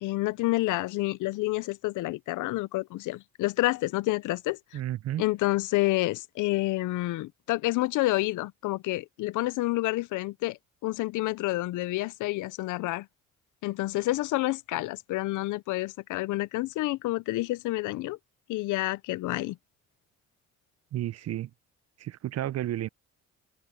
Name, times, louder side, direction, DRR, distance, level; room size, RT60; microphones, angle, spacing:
voice 1, 0.0-4.6 5.2-10.6 10.8-13.1 13.6-18.2 18.5-19.6, left 19 dB, 85° left, 0.6 m, -29 dB
voice 2, 4.7-5.2 20.9-21.5 22.0-22.9, right 13 dB, 55° right, 0.6 m, -32 dB
open air
cardioid pair, 90°, 30 cm